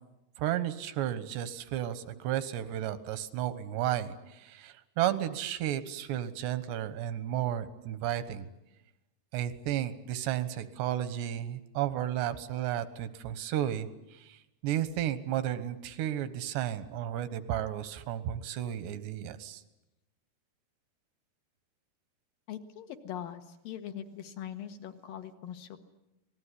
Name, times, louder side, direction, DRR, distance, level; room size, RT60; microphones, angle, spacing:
voice 1, 0.4-8.5 9.3-19.6, right 11 dB, 90° right, 12 dB, 3.4 m, -33 dB
voice 2, 22.5-25.8, left 10 dB, 65° left, 8 dB, 3.0 m, -41 dB
27.0 x 20.0 x 9.9 m, 0.92 s
omnidirectional pair, 4.8 m